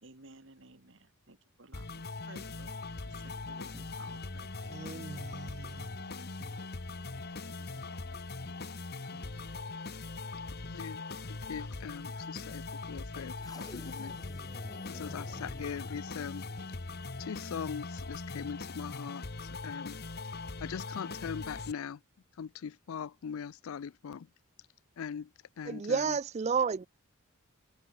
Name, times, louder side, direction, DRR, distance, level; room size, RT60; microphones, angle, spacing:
voice 1, 0.0-2.7 3.0-4.8, right 2 dB, 60° right, 2.0 m, -56 dB
sound 1, 1.7-21.7, left 3 dB, 50° left, 1.2 m, -41 dB
sound 2, 2.5-10.0, equal, 15° right, 5.4 m, -58 dB
voice 2, 4.7-5.9 25.7-26.9, right 5 dB, 30° right, 0.3 m, -32 dB
voice 3, 10.6-11.0 11.3-14.1 14.8-16.5 17.2-20.0 20.6-22.0 22.4-24.3 25.0-25.3 25.6-26.2, left 7 dB, 75° left, 0.4 m, -41 dB
sound 3, 13.4-17.7, left 2 dB, 15° left, 0.6 m, -50 dB
head